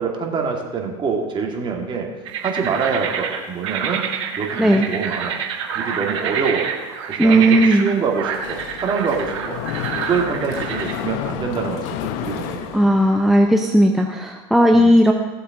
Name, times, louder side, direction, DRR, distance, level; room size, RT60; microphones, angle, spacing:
voice 1, 0.0-2.1 2.4-4.0 4.4-5.4 5.7-6.7 7.1-9.6 10.1-11.9 12.2-12.8 14.7-14.9, right 5 dB, 30° right, 1 dB, 2.3 m, -25 dB
sound 1, 2.3-11.0, right 7 dB, 80° right, 1.4 m, -27 dB
voice 2, 7.2-7.9 12.7-15.1, equal, ahead, 2 dB, 0.8 m, -15 dB
Mechanisms, 8.3-13.5, left 10 dB, 60° left, 0.9 m, -31 dB
16.5 x 7.7 x 3.9 m, 1.2 s
supercardioid pair, 100°, 15 cm